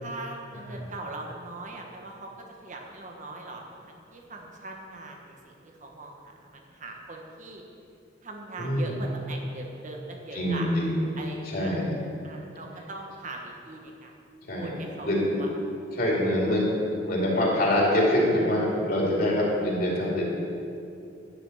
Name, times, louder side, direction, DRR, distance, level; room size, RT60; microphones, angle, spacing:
voice 1, 0.0-7.6 8.2-10.7 11.2-11.7 12.2-14.1 14.6-15.5, right 2 dB, 40° right, 1 dB, 1.3 m, -41 dB
voice 2, 0.5-0.9 8.6-9.0 10.3-11.1 11.4-12.0 14.5-14.7 15.0-15.4 15.9-20.2, left 1 dB, 55° left, -4 dB, 2.6 m, -25 dB
11.5 x 6.0 x 7.8 m, 2.7 s
head